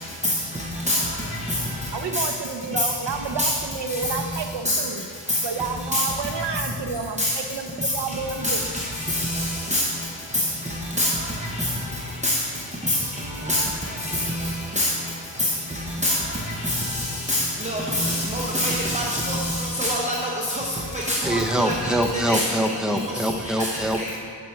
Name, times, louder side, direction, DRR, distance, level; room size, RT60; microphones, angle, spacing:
voice 1, 1.9-5.1 5.4-8.6, right 5 dB, 75° right, 5 dB, 0.7 m, -30 dB
voice 2, 17.7-19.4 19.8-20.1 21.1-21.7 22.3-22.4, left 1 dB, 15° right, -3 dB, 0.8 m, -23 dB
voice 3, 21.2-24.2, right 1 dB, ahead, 5 dB, 0.4 m, -24 dB
8.0 x 7.5 x 4.6 m, 2.2 s
wide cardioid pair, 115°, 42 cm